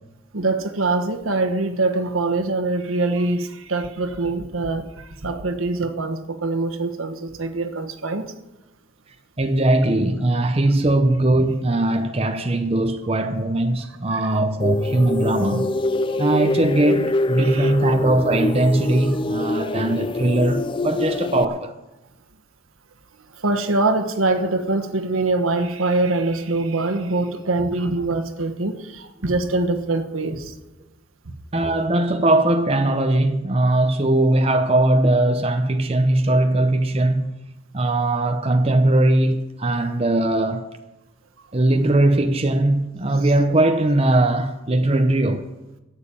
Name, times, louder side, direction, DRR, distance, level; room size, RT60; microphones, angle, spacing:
voice 1, 0.3-4.8 5.2-8.2 14.1-14.4 17.4-17.7 23.4-28.7 29.2-30.4, right 2 dB, 85° right, 1.3 m, -23 dB
voice 2, 9.4-15.7 16.1-21.7 31.5-37.4 37.7-40.7 41.5-45.5, right 1 dB, 30° right, 0.7 m, -20 dB
sound 1, 14.6-21.4, left 2 dB, 25° left, 0.4 m, -24 dB
13.0 x 7.4 x 8.5 m
head